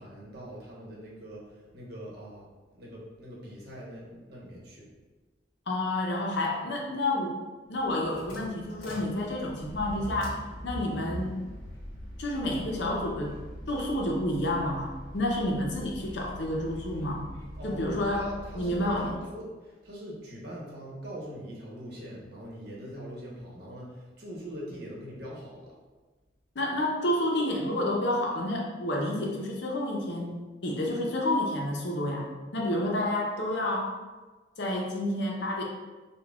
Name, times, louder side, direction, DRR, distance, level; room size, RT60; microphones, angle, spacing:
voice 1, 0.0-2.5 2.7-4.9 17.6-25.7, equal, 55° right, -5 dB, 0.9 m, -42 dB
voice 2, 5.7-7.3 7.7-11.4 12.2-13.4 13.7-17.3 17.6-18.3 18.6-19.1 26.5-32.3 32.5-34.0 34.6-35.6, left 1 dB, 65° left, -1 dB, 0.6 m, -29 dB
sound 1, 7.7-19.3, equal, 45° left, 1.4 m, -42 dB
5.0 x 2.2 x 2.3 m, 1.3 s
head